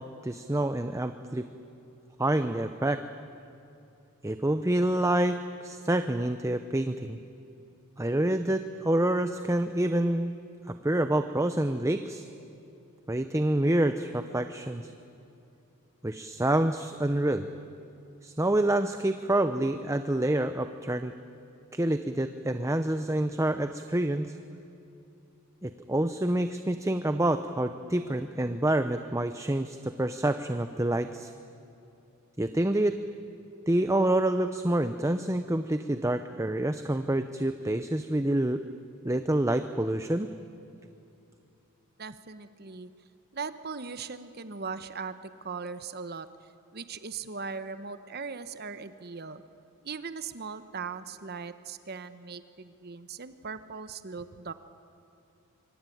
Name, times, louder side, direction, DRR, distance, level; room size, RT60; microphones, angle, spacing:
voice 1, 0.0-1.5 2.2-3.0 4.2-7.2 8.0-10.3 10.8-12.3 13.1-14.9 16.0-17.5 18.2-21.1 21.7-24.3 25.6-31.3 32.4-33.0 33.7-38.6 39.0-40.3, right 1 dB, 15° right, 9 dB, 0.7 m, -27 dB
voice 2, 42.0-42.9 43.3-45.1 45.4-49.4 49.8-54.5, right 5 dB, 45° right, 11 dB, 1.0 m, -39 dB
25.5 x 24.5 x 9.3 m, 2.8 s
head